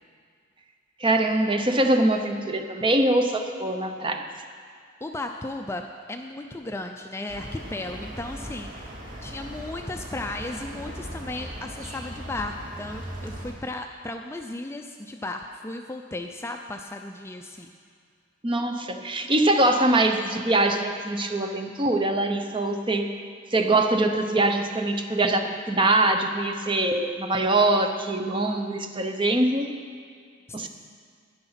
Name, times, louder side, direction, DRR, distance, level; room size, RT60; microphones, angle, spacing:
voice 1, 1.0-4.3 18.4-23.2 23.5-29.7 30.5-30.7, right 2 dB, 25° right, 5 dB, 0.8 m, -23 dB
voice 2, 5.0-8.9 9.2-17.7, left 2 dB, 15° left, 4 dB, 0.4 m, -35 dB
sound 1, 7.3-13.5, equal, 40° right, 2.3 m, -39 dB
12.0 x 10.0 x 5.7 m, 2.2 s
head